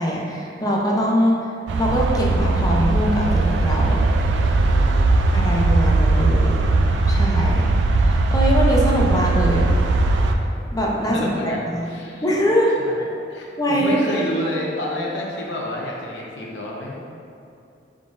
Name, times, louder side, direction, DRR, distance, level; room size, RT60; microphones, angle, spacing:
voice 1, 0.0-1.5 1.8-4.0 5.3-6.5 7.1-7.7 8.0-9.7 10.4-11.9 12.2-12.7 13.6-14.2, equal, 20° left, -2 dB, 0.6 m, -22 dB
sound 1, 1.7-10.3, right 2 dB, 80° right, 0.3 m, -19 dB
voice 2, 4.6-5.1 11.1-12.2 12.8-13.0 13.3-17.0, left 1 dB, 75° left, -2 dB, 0.7 m, -29 dB
4.6 x 3.7 x 2.5 m, 2.6 s
head